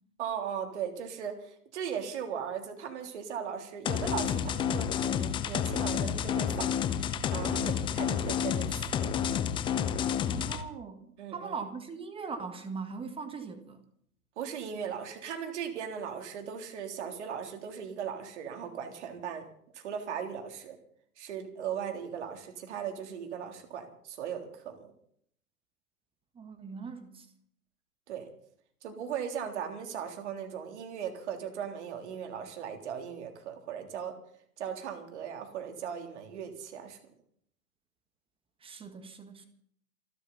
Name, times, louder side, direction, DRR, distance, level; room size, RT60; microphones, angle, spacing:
voice 1, 0.2-9.1 11.2-11.6 14.4-19.5 19.7-20.8 21.2-24.9 28.1-28.3 28.8-34.2 34.6-37.0, right 8 dB, 50° right, 3.5 m, -38 dB
sound 1, 3.8-10.6, left 8 dB, 10° left, 0.7 m, -30 dB
voice 2, 10.3-13.8 26.3-27.3 38.6-39.5, right 5 dB, 10° right, 1.7 m, -40 dB
28.5 x 12.0 x 4.2 m
figure-of-eight pair, 115°, 45 cm